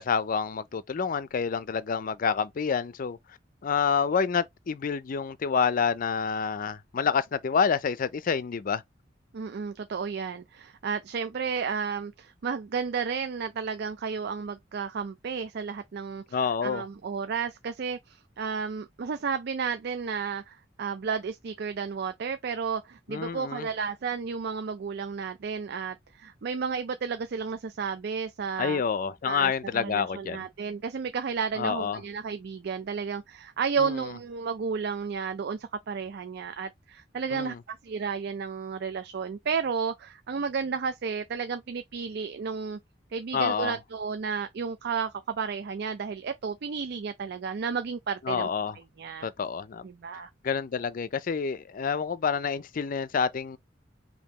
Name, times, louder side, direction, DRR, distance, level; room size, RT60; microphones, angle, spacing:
voice 1, 0.0-3.2 3.6-8.8 16.3-16.8 23.1-23.7 28.6-30.5 31.6-32.0 33.8-34.1 37.3-37.6 43.3-43.8 48.2-48.8 49.2-49.8 50.4-53.6, left 6 dB, 45° left, 0.4 m, -28 dB
voice 2, 9.3-28.8 29.2-42.8 43.1-48.5 49.0-49.3 49.8-50.3, right 5 dB, 60° right, 0.4 m, -32 dB
5.3 x 2.7 x 2.9 m
head